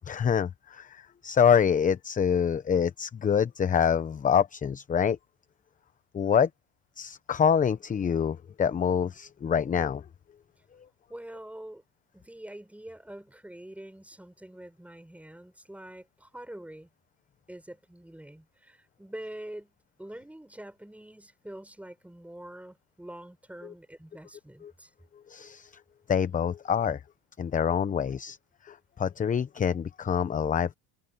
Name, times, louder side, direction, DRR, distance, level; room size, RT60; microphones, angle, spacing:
voice 1, 0.1-5.2 6.1-6.5 7.0-10.0 23.6-23.7 24.6-24.7 25.3-25.7 26.1-27.0 27.4-28.4 28.6-30.7, left 7 dB, 20° left, 0.9 m, -26 dB
voice 2, 11.1-11.8 12.1-16.9 17.5-19.7 20.0-24.9, right 1 dB, 5° right, 5.1 m, -45 dB
supercardioid pair, 105°, 36 cm